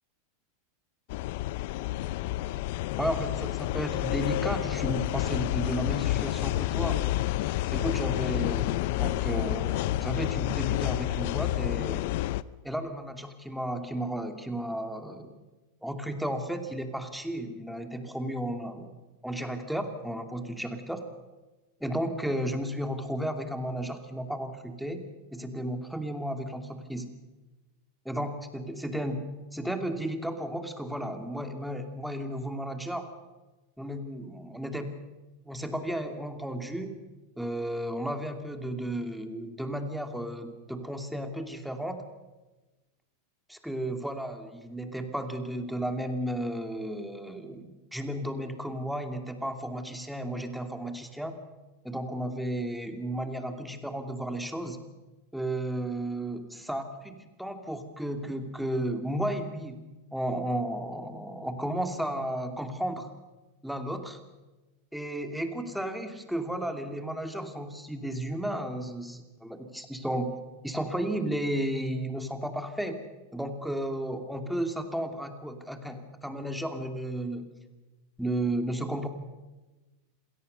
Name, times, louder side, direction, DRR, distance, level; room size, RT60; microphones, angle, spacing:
sound 1, 1.1-12.4, left 15 dB, 65° left, 0.6 m, -29 dB
voice 1, 3.0-7.0 7.7-12.1 12.6-15.4 15.8-19.0 19.2-21.0 21.8-25.0 25.3-27.1 28.0-29.2 29.5-33.1 33.8-35.0 35.5-37.0 37.4-42.0 43.5-51.3 51.8-54.8 55.3-59.8 60.1-63.1 63.6-64.2 64.9-70.3 70.6-73.0 73.3-77.5 78.2-79.1, right 1 dB, ahead, 6 dB, 2.6 m, -33 dB
26.5 x 17.5 x 6.8 m, 1.1 s
hypercardioid pair, 110°, 0 cm